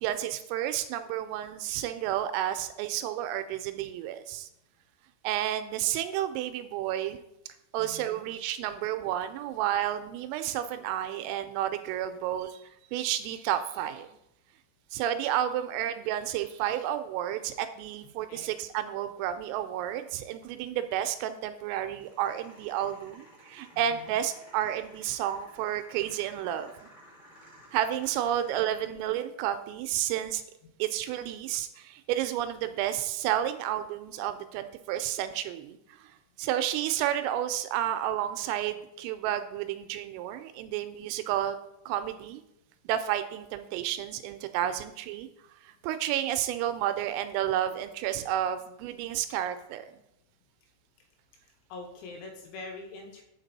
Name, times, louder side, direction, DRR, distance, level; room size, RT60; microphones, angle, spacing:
voice 1, 0.0-4.5 5.2-7.2 7.7-12.6 12.9-14.1 14.9-26.7 27.7-30.4 30.8-35.8 36.4-41.6 41.9-42.4 42.9-45.3 45.6-50.0, right 11 dB, 85° right, 10 dB, 3.1 m, -31 dB
voice 2, 7.8-8.3 18.3-18.6 23.7-24.2 51.7-53.2, left 3 dB, 75° left, 3 dB, 3.0 m, -44 dB
sound 1, 22.0-29.0, equal, 35° left, 1.1 m, -55 dB
8.7 x 5.9 x 4.1 m, 0.85 s
omnidirectional pair, 6.0 m